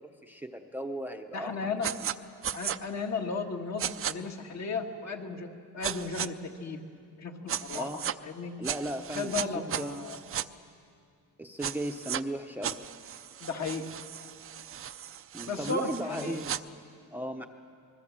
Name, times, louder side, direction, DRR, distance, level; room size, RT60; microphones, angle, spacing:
voice 1, 0.0-1.7 2.0-2.1 7.7-8.0 8.6-10.1 11.4-12.8 15.3-16.6 17.1-17.5, right 1 dB, 5° right, 5 dB, 0.7 m, -36 dB
voice 2, 1.3-1.9 2.5-5.5 5.7-6.8 7.2-8.5 9.1-10.2 13.4-13.9 15.5-16.4, left 4 dB, 55° left, 3 dB, 1.9 m, -35 dB
sound 1, 1.8-2.1 2.4-2.8 3.8-4.1 5.8-6.3 7.5-8.1 8.6-10.4 11.6-12.2 12.6-16.6, right 9 dB, 40° right, 0.5 m, -36 dB
25.5 x 21.0 x 7.4 m, 2.4 s
wide cardioid pair, 160°, 33 cm